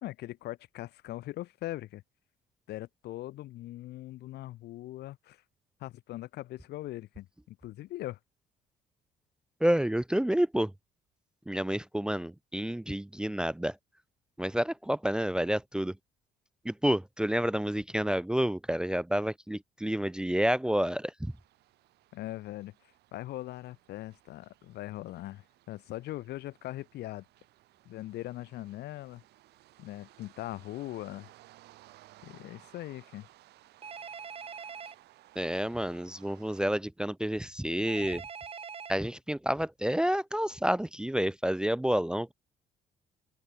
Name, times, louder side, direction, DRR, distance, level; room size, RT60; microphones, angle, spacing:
voice 1, 0.0-2.0 2.7-5.4 5.8-8.2 22.1-22.7 23.1-27.2 27.8-29.2 29.8-31.3 32.2-33.3 37.7-37.8, left 15 dB, 75° left, 2.8 m, -41 dB
voice 2, 9.6-10.7 11.5-13.8 14.4-16.0 16.6-21.3 35.4-38.2 38.9-42.3, equal, 5° right, 0.7 m, -29 dB
sound 1, 21.2-36.6, right 16 dB, 80° right, 4.6 m, -60 dB
Telephone, 33.8-35.0 37.9-38.9, right 6 dB, 35° right, 2.9 m, -42 dB
open air
cardioid pair, 110°, 17 cm